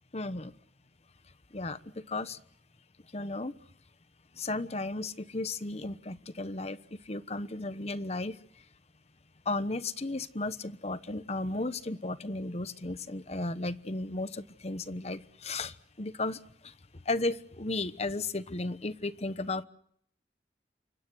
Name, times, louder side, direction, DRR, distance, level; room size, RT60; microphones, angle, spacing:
voice 1, 0.1-0.5 1.5-1.8 2.1-2.4 3.1-3.5 4.4-6.8 7.1-8.3 9.5-15.7 16.0-16.4 17.1-19.6, left 2 dB, 35° left, 13 dB, 1.1 m, -34 dB
28.5 x 25.0 x 6.3 m, 0.67 s
head